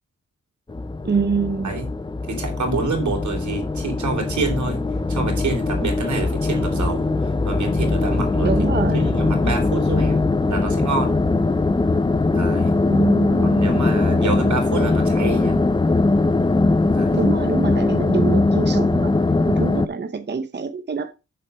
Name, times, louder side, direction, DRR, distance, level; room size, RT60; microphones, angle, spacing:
sound 1, 0.7-19.9, left 3 dB, 15° left, 0.5 m, -20 dB
voice 1, 1.0-1.7 8.4-9.1 12.9-13.9 17.1-19.1 19.5-21.2, right 5 dB, 35° right, 0.9 m, -25 dB
voice 2, 2.3-4.8 5.1-8.5 8.9-11.2 12.3-12.8 13.4-15.6 16.9-17.3, right 3 dB, 80° right, 3.5 m, -27 dB
8.0 x 6.8 x 4.4 m
wide cardioid pair, 100°, 29 cm